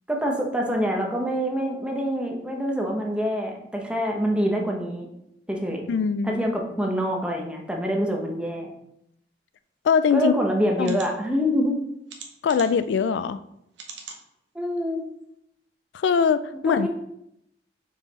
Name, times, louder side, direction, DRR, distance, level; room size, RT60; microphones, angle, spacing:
voice 1, 0.1-5.1 5.5-5.8 6.2-8.7 10.1-11.8 14.5-15.1 16.6-16.9, equal, 5° right, 0 dB, 0.9 m, -25 dB
voice 2, 5.9-6.5 9.8-10.3 10.8-11.0 12.4-13.4 15.9-16.9, left 6 dB, 80° left, 13 dB, 0.3 m, -22 dB
sound 1, 10.0-10.1 10.8-11.1 12.1-12.9 13.7-14.2 14.8-14.9 15.2-15.3, right 5 dB, 85° right, 1.0 m, -41 dB
5.6 x 4.6 x 4.0 m, 0.78 s
head